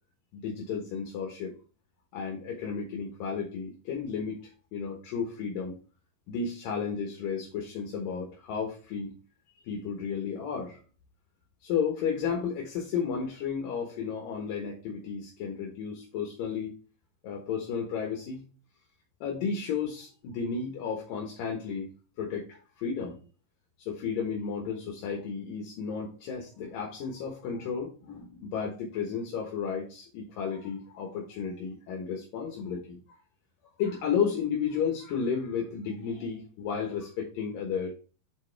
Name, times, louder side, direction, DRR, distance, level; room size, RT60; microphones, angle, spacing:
voice 1, 0.3-1.5 2.1-4.4 4.7-5.8 6.3-9.1 9.6-10.8 11.6-16.7 17.2-18.4 19.2-21.9 22.2-23.2 23.8-33.2 33.8-37.9, left 6 dB, 70° left, 0 dB, 2.9 m, -33 dB
9.4 x 4.2 x 3.2 m, 0.37 s
omnidirectional pair, 4.2 m